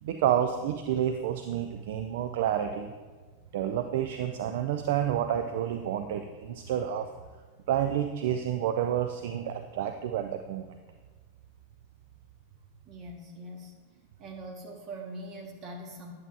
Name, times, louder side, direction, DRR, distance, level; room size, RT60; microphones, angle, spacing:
voice 1, 0.0-2.9 3.5-7.1 7.7-10.7, right 10 dB, 55° right, 6 dB, 0.4 m, -29 dB
voice 2, 12.8-13.7 14.2-16.1, right 1 dB, 35° right, 1 dB, 1.5 m, -42 dB
9.7 x 7.6 x 2.6 m, 1.4 s
figure-of-eight pair, 90°, 0 cm